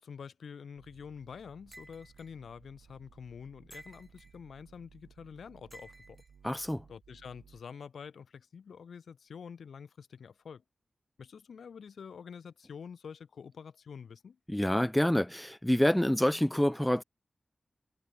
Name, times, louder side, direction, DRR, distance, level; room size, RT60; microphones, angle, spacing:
voice 1, 0.0-6.2 6.9-10.6 11.2-14.4, left 6 dB, 85° left, 3.3 m, -47 dB
sound 1, 0.8-7.6, right 6 dB, 85° right, 5.9 m, -60 dB
sound 2, 1.7-2.3 3.7-4.4 5.7-6.3, right 1 dB, 15° right, 2.9 m, -53 dB
voice 2, 6.4-6.8 14.5-17.0, left 1 dB, 10° left, 0.5 m, -27 dB
cardioid pair, 55°, 0 cm